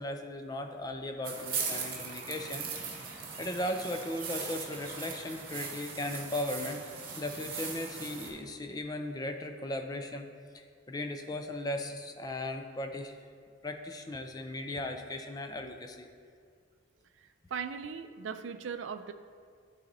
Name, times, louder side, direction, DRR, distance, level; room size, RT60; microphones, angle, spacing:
voice 1, 0.0-2.7 2.9-3.0 3.4-10.3 10.5-13.2 13.6-16.1, left 1 dB, 20° left, 6 dB, 0.4 m, -37 dB
sound 1, 1.2-8.3, right 5 dB, 45° right, 1.0 m, -39 dB
voice 2, 17.1-19.1, right 6 dB, 70° right, 9 dB, 0.4 m, -39 dB
11.5 x 4.1 x 2.7 m, 2.1 s
head